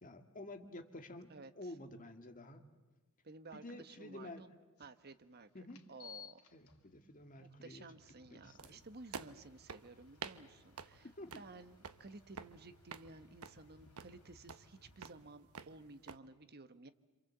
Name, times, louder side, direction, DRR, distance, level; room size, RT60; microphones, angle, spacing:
voice 1, 0.0-1.3 1.6-2.6 3.5-4.4 5.5-5.8 6.5-7.9 8.3-8.8 11.0-11.4, left 1 dB, 40° left, 5 dB, 2.2 m, -50 dB
voice 2, 1.3-1.7 3.2-4.3 4.8-6.4 7.4-16.9, right 3 dB, 45° right, 11 dB, 1.1 m, -55 dB
sound 1, 4.8-4.9 5.7-15.1, left 6 dB, 80° left, 2.5 m, -61 dB
sound 2, 8.6-16.2, right 5 dB, 85° right, 1.1 m, -51 dB
27.0 x 26.5 x 8.0 m, 1.2 s
head